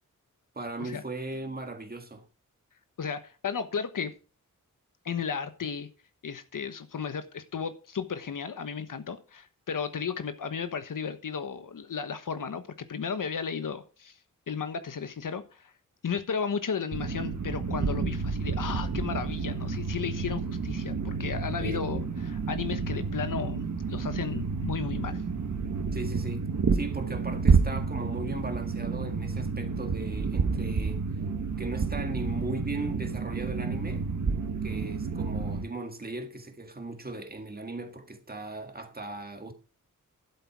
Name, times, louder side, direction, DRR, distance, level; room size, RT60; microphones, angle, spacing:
voice 1, 0.6-2.2 21.6-21.8 25.9-26.5 26.7-31.0 31.6-34.1 34.6-39.5, right 2 dB, 30° right, 1.9 m, -37 dB
voice 2, 3.0-4.1 5.0-5.9 6.2-14.1 14.5-15.7 16.0-25.2, left 6 dB, 75° left, 1.2 m, -34 dB
sound 1, 16.9-35.6, right 4 dB, 60° right, 1.7 m, -30 dB
11.5 x 8.1 x 4.7 m
wide cardioid pair, 115°, 32 cm